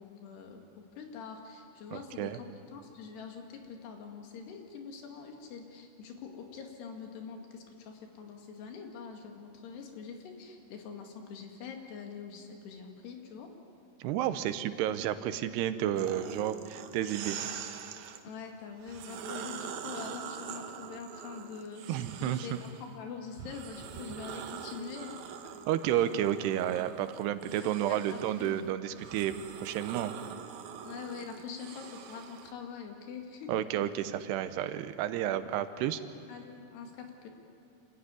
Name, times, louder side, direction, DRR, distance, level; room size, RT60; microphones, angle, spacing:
voice 1, 0.0-2.5 2.7-13.5 18.2-25.2 25.4-25.6 27.4-28.5 30.8-33.5 35.2-35.6 36.3-37.3, left 6 dB, 85° left, 3 dB, 4.3 m, -44 dB
voice 2, 1.9-2.4 14.0-17.4 21.9-22.6 25.7-29.4 29.6-30.1 33.5-36.0, right 11 dB, 90° right, 11 dB, 3.0 m, -31 dB
sound 1, 16.0-18.2 18.8-22.9 23.4-32.5, right 8 dB, 70° right, 1.9 m, -44 dB
27.0 x 15.0 x 9.7 m, 2.7 s
omnidirectional pair, 4.7 m